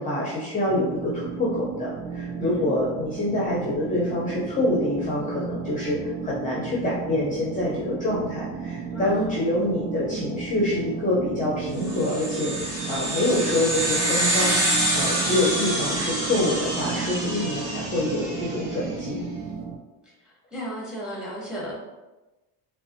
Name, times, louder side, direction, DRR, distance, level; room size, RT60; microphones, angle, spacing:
voice 1, 0.0-19.2, left 1 dB, 15° left, -6 dB, 0.7 m, -26 dB
sound 1, 0.7-19.8, right 5 dB, 70° right, 0.6 m, -34 dB
voice 2, 8.9-9.4 20.5-21.7, equal, ahead, -4 dB, 1.0 m, -35 dB
sound 2, 11.8-18.7, right 1 dB, 30° right, 1.4 m, -27 dB
3.8 x 2.1 x 2.8 m, 1.1 s
supercardioid pair, 105°, 49 cm